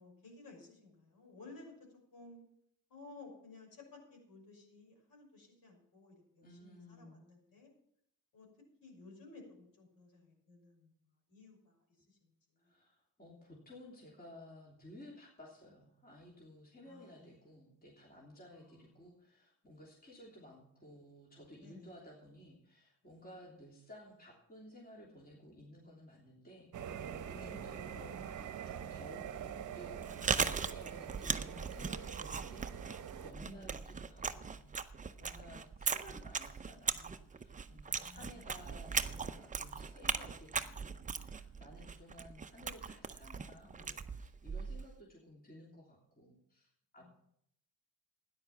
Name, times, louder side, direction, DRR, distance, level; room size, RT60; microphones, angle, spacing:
voice 1, 0.0-1.7 2.1-2.4 2.9-7.7 8.3-8.5 8.8-10.9 11.3-12.7 16.8-17.5 18.5-18.8 21.6-21.9 27.3-27.9 33.4-33.5 35.2-35.5 38.0-38.5 47.0-47.1, left 3 dB, 60° left, 0 dB, 5.9 m, -56 dB
voice 2, 6.4-7.2 12.6-29.5 29.7-47.1, left 1 dB, 20° left, -3 dB, 3.2 m, -56 dB
sound 1, 26.7-33.3, right 8 dB, 45° right, 1.0 m, -45 dB
Chewing mastication, 29.9-44.9, right 5 dB, 20° right, 0.6 m, -39 dB
13.0 x 10.0 x 5.8 m, 0.71 s
cardioid pair, 115°, 40 cm